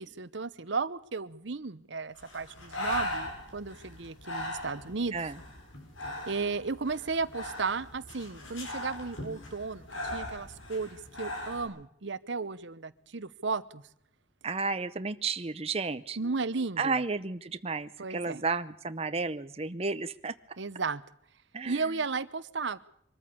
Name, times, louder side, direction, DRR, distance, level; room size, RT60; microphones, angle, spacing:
voice 1, 0.0-5.2 6.3-13.8 16.2-17.0 18.0-18.4 20.6-21.0 21.6-22.8, right 4 dB, 65° right, 16 dB, 0.9 m, -34 dB
Breathing, 2.2-11.7, left 1 dB, 90° left, 7.7 m, -39 dB
voice 2, 14.4-16.2 16.8-20.3 21.5-21.9, right 4 dB, 30° right, 10 dB, 0.7 m, -32 dB
24.0 x 14.0 x 8.4 m, 0.71 s
head